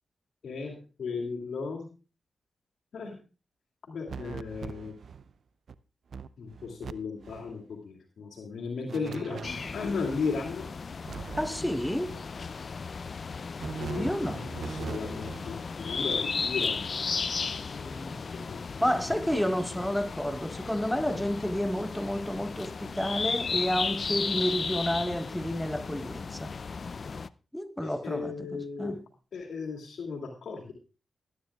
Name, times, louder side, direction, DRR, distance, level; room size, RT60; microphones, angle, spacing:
voice 1, 0.4-1.9 2.9-3.2 3.9-4.9 6.4-10.6 13.8-17.2 17.7-18.2 18.5-18.6 21.1-21.2 27.8-28.9 29.3-30.7, left 4 dB, 70° left, 2.6 m, -36 dB
sound 1, 4.1-5.3 5.7-5.8 6.1-6.9 7.2-7.5 8.9-10.0 11.0-12.0 13.6-15.5, right 6 dB, 65° right, 0.5 m, -41 dB
sound 2, 9.4-27.3, left 5 dB, 55° left, 0.4 m, -35 dB
voice 2, 11.4-12.2 14.0-14.4 18.8-26.5 27.5-29.0, equal, 5° left, 1.1 m, -30 dB
19.5 x 9.8 x 2.4 m
supercardioid pair, 40°, 0 cm